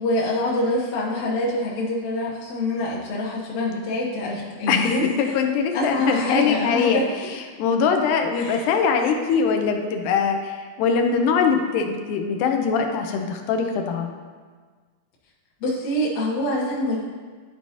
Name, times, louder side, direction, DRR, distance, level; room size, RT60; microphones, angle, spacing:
voice 1, 0.0-5.3 5.7-7.0 8.4-8.7 15.6-17.0, left 1 dB, 65° left, -6 dB, 2.1 m, -25 dB
voice 2, 4.7-7.0 7.6-14.1, left 6 dB, 85° left, 4 dB, 2.2 m, -22 dB
12.0 x 4.6 x 2.7 m, 1.5 s
omnidirectional pair, 3.7 m